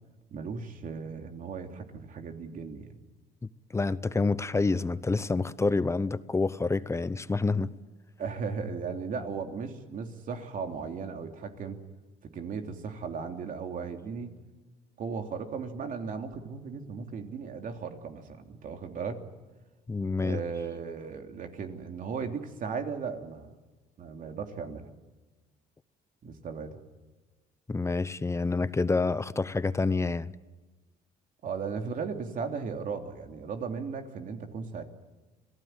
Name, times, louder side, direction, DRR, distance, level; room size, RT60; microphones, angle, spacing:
voice 1, 0.3-3.0 8.2-11.8 12.2-14.4 15.0-19.2 20.2-23.6 24.0-24.9 26.2-26.8 31.4-34.8, right 5 dB, 55° right, 5 dB, 3.1 m, -36 dB
voice 2, 3.7-7.7 19.9-20.4 27.7-30.3, left 3 dB, 15° left, 15 dB, 0.8 m, -28 dB
27.0 x 18.0 x 9.1 m, 1.2 s
cardioid pair, 110°, 17 cm